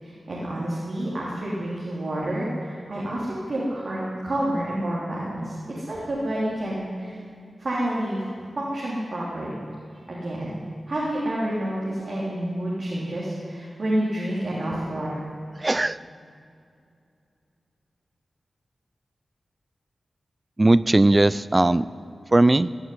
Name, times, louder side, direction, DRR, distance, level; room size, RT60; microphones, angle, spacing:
voice 1, 0.0-7.2 7.6-8.2 8.5-9.6 10.1-10.6 10.9-15.2, right 1 dB, 60° right, -6 dB, 3.3 m, -29 dB
voice 2, 15.6-16.0 20.6-21.8 22.3-22.7, right 2 dB, 25° right, 17 dB, 0.3 m, -18 dB
15.5 x 9.0 x 9.6 m, 2.5 s
cardioid pair, 65°, 0 cm